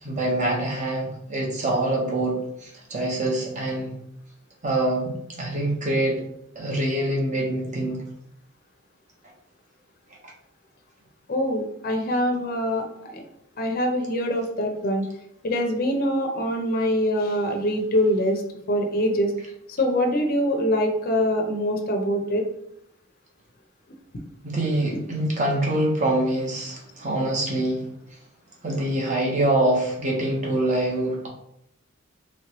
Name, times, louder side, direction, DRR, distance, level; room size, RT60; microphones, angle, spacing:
voice 1, 0.0-2.4 2.6-3.9 4.6-6.2 6.5-8.0 24.4-27.8 28.6-31.3, right 1 dB, 35° right, -2 dB, 1.0 m, -25 dB
voice 2, 11.3-13.2 13.6-15.0 15.4-18.4 18.7-19.3 19.8-22.4, equal, 45° left, 3 dB, 0.6 m, -24 dB
3.1 x 3.0 x 2.9 m, 0.77 s
head